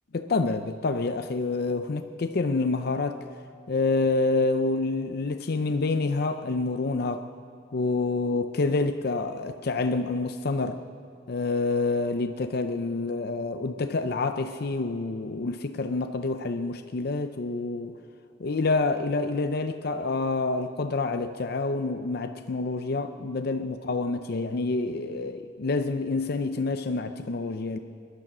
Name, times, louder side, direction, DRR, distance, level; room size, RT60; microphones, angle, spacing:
voice 1, 0.1-3.2 3.7-7.3 7.7-10.8 11.3-18.0 18.4-27.8, left 3 dB, 60° left, 7 dB, 0.5 m, -27 dB
20.0 x 11.5 x 6.1 m, 2.4 s
head